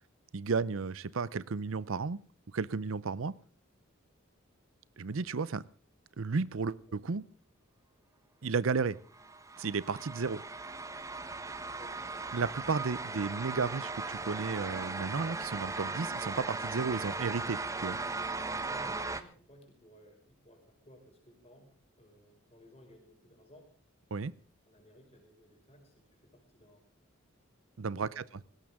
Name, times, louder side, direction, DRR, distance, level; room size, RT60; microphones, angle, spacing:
voice 1, 0.3-2.2 2.5-3.3 5.0-5.6 6.2-7.2 8.4-9.0 9.6-10.4 12.3-18.0 24.1-24.3 27.8-28.2, right 4 dB, 75° right, 20 dB, 0.6 m, -33 dB
sound 1, 9.1-19.2, right 3 dB, 15° right, 1.0 m, -38 dB
voice 2, 11.7-12.2 18.6-23.7 24.7-26.8 27.9-28.4, equal, 30° left, 3 dB, 5.5 m, -57 dB
18.5 x 17.0 x 3.6 m, 0.39 s
head